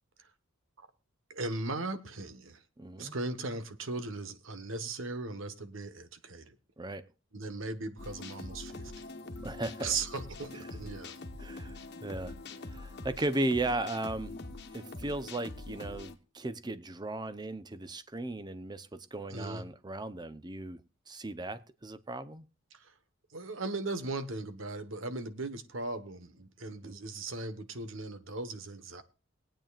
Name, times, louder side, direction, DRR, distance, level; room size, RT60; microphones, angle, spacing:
voice 1, 1.3-2.6 3.0-6.5 7.3-9.1 9.8-11.2 19.3-19.6 22.7-22.9 23.3-29.0, right 3 dB, 75° right, 1.3 m, -38 dB
voice 2, 2.8-3.1 6.8-7.0 9.4-9.9 11.4-12.4 12.7-14.3 14.7-20.8 21.1-22.4 26.8-27.0, right 2 dB, 20° right, 0.7 m, -36 dB
sound 1, 8.0-16.1, left 2 dB, 55° left, 1.2 m, -44 dB
21.5 x 9.0 x 2.4 m
head